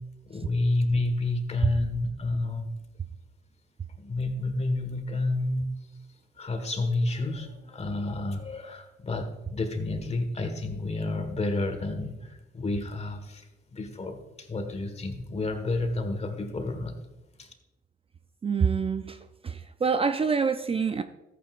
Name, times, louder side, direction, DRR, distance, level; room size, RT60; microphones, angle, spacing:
voice 1, 0.3-2.7 4.0-5.7 6.4-13.5 13.7-17.0 17.4-17.5, left 2 dB, 30° left, 6 dB, 1.6 m, -30 dB
voice 2, 18.4-19.2 19.4-21.0, right 5 dB, 30° right, 9 dB, 0.4 m, -26 dB
13.5 x 9.1 x 2.5 m, 1.0 s
cardioid pair, 90°, 20 cm